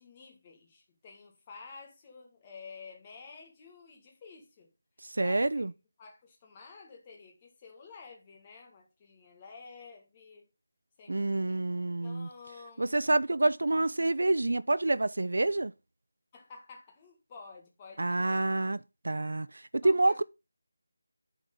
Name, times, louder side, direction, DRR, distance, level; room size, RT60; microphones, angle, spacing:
voice 1, 0.0-4.7 5.2-5.6 6.0-10.5 11.0-11.6 12.0-13.0 16.3-18.5 19.8-20.2, left 4 dB, 15° left, 1.8 m, -51 dB
voice 2, 5.1-5.7 11.1-12.3 12.8-15.7 18.0-18.8 19.0-20.2, right 2 dB, 70° right, 0.5 m, -27 dB
10.5 x 4.7 x 5.5 m
figure-of-eight pair, 175°, 0 cm